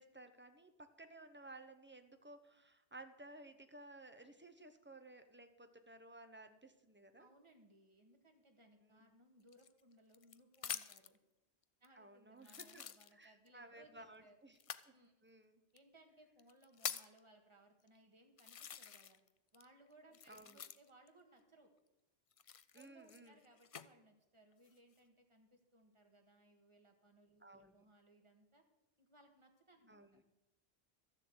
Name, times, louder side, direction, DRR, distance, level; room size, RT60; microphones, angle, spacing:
voice 1, 0.0-7.3 8.8-9.1 11.9-12.8 13.1-14.6 14.9-15.0 15.2-15.6 20.3-20.6 22.7-23.4 27.4-27.7 29.9-30.2, right 2 dB, 10° right, 8 dB, 0.8 m, -57 dB
voice 2, 7.2-11.2 11.8-14.4 14.9-15.1 15.7-19.2 19.5-21.7 22.7-28.6 29.0-30.0, right 1 dB, 25° right, 3 dB, 1.8 m, -66 dB
sound 1, 9.5-11.2 11.8-11.9 12.4-13.5 14.6-14.9 15.8-15.9 16.4-17.2 17.9-18.0 18.4-19.3 19.5-21.1 22.3-23.9 24.5-25.0, left 7 dB, 55° left, 0.4 m, -47 dB
13.0 x 7.3 x 8.0 m, 0.93 s
omnidirectional pair, 1.1 m